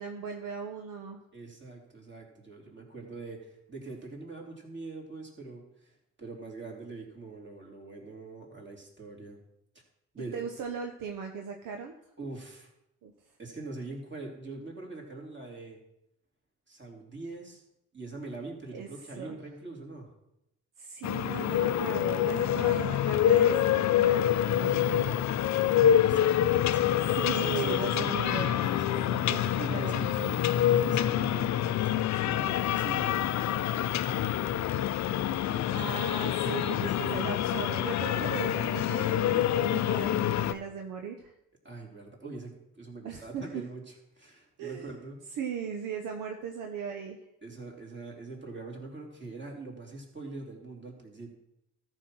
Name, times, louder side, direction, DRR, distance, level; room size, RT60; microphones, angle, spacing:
voice 1, 0.0-1.2 10.3-11.9 13.0-13.1 18.7-18.9 19.2-19.4 20.8-25.0 27.1-28.9 29.3-30.4 35.7-41.3 43.0-43.6 44.6-44.9 45.4-47.2, right 6 dB, 70° right, 4 dB, 1.0 m, -38 dB
voice 2, 1.3-9.4 10.1-10.4 12.2-12.7 13.4-15.8 16.7-17.6 17.9-20.1 22.4-22.8 24.6-28.2 28.9-30.1 30.7-34.3 35.2-35.9 37.0-37.2 38.1-38.7 41.6-45.3 47.4-51.3, right 3 dB, 35° right, 0 dB, 3.5 m, -43 dB
sound 1, 21.0-40.5, left 11 dB, 55° left, 0.6 m, -26 dB
13.5 x 4.5 x 6.2 m, 0.84 s
hypercardioid pair, 50°, 34 cm